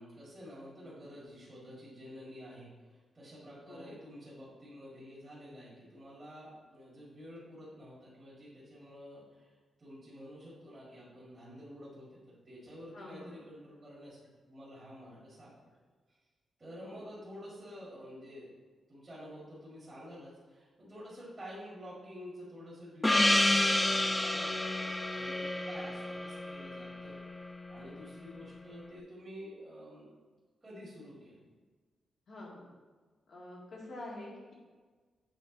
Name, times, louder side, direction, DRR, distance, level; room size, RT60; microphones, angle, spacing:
voice 1, 0.0-14.2 14.5-15.7 16.6-18.5 18.9-30.1 30.6-31.4, equal, 20° right, -10 dB, 2.1 m, -49 dB
voice 2, 12.9-13.4 16.7-17.1 32.3-32.7 33.3-34.5, left 1 dB, 55° left, -3 dB, 1.7 m, -47 dB
Gong, 23.0-27.8, left 1 dB, 10° left, 0.3 m, -30 dB
7.9 x 3.9 x 3.9 m, 1.4 s
wide cardioid pair, 130°, 0 cm